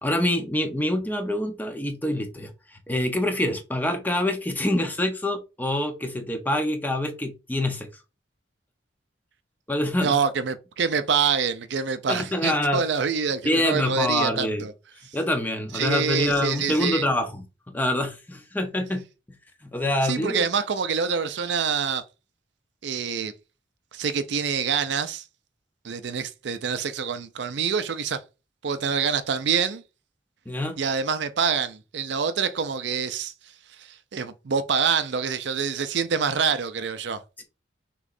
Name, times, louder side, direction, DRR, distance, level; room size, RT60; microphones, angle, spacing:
voice 1, 0.0-7.9 9.7-10.2 12.1-12.8 13.4-14.6 15.1-17.4 17.7-19.0 19.6-20.4 30.5-30.8 37.4-37.5, left 1 dB, 10° left, 0.7 m, -26 dB
voice 2, 10.0-14.7 15.7-17.1 20.0-22.0 22.8-23.3 23.9-25.2 25.8-28.2 28.6-29.8 30.8-33.3 33.8-37.2, right 6 dB, 65° right, 0.5 m, -26 dB
6.2 x 3.1 x 2.5 m
head